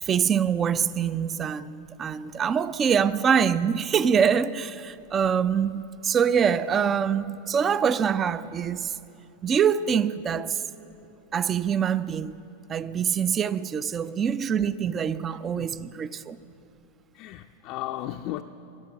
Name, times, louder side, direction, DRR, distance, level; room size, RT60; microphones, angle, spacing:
voice 1, 0.0-8.9 9.4-10.6 11.3-12.4 12.7-16.4, right 7 dB, 25° right, 0.3 m, -24 dB
voice 2, 15.3-15.7 17.1-18.4, left 14 dB, 40° left, 0.4 m, -35 dB
17.0 x 11.5 x 5.8 m
figure-of-eight pair, 90°, 0 cm